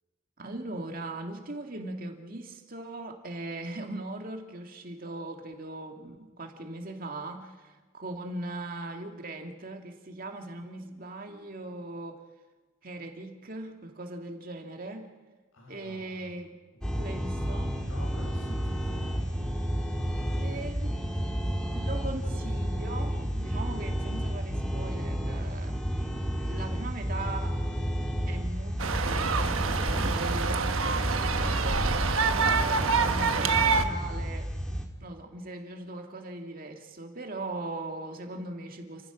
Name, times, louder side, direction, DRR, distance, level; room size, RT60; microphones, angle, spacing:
voice 1, 0.4-12.2 12.8-15.1 15.7-16.6 16.9-17.8 20.4-21.0 21.7-25.8 26.4-27.6 28.3-30.8 32.1-34.5 35.0-39.1, right 2 dB, 45° right, 3 dB, 2.3 m, -39 dB
voice 2, 15.5-16.3 16.9-17.3 17.8-19.0, left 1 dB, 85° left, 0 dB, 7.2 m, -45 dB
sound 1, 16.8-34.9, equal, 5° left, 2.1 m, -31 dB
sound 2, 28.8-33.8, right 4 dB, 75° right, 1.2 m, -26 dB
29.5 x 15.0 x 6.1 m, 1.3 s
head